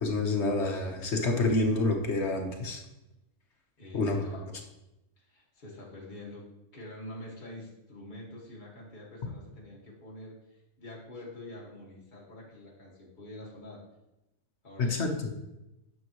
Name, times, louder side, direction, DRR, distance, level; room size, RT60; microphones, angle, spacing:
voice 1, 0.0-2.8 3.9-4.4 14.8-15.3, left 2 dB, 55° left, 3 dB, 1.2 m, -28 dB
voice 2, 3.8-4.4 5.2-6.5 6.7-13.8 14.6-15.0, left 1 dB, 35° left, -5 dB, 1.9 m, -46 dB
9.5 x 6.5 x 3.0 m, 0.92 s
omnidirectional pair, 1.5 m